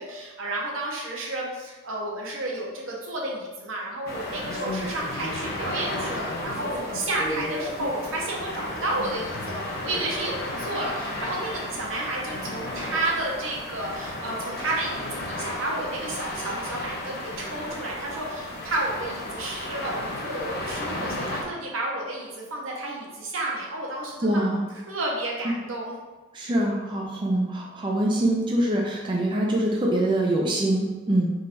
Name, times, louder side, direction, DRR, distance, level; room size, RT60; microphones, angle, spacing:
voice 1, 0.0-24.4 24.9-25.9, right 2 dB, 75° right, -2 dB, 1.0 m, -31 dB
sound 1, 4.1-21.4, left 1 dB, 50° left, 0.7 m, -33 dB
voice 2, 24.2-24.6 26.3-31.3, right 1 dB, 25° right, -2 dB, 0.5 m, -24 dB
4.3 x 3.8 x 2.6 m, 1.3 s
head